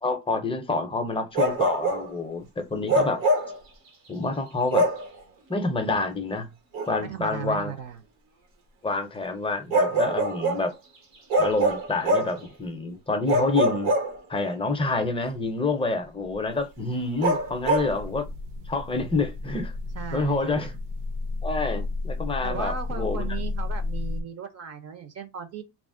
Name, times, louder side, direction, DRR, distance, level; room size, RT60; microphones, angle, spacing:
voice 1, 0.0-3.2 4.1-4.9 5.5-6.5 6.9-7.7 8.8-10.7 11.4-13.9 14.3-18.3 18.7-19.7 20.1-20.7 21.4-23.2, left 3 dB, 15° left, 0.5 m, -27 dB
Bark, 1.3-2.1 2.9-3.6 4.7-5.1 6.7-6.9 9.7-10.7 11.3-12.4 13.3-14.5 17.2-17.9, right 1 dB, 85° right, 1.2 m, -24 dB
voice 2, 7.0-8.0 20.0-20.8 22.4-25.6, right 7 dB, 40° right, 0.5 m, -36 dB
sound 1, 16.9-24.2, left 3 dB, 70° right, 0.8 m, -33 dB
2.4 x 2.0 x 3.6 m
cardioid pair, 125°, 43 cm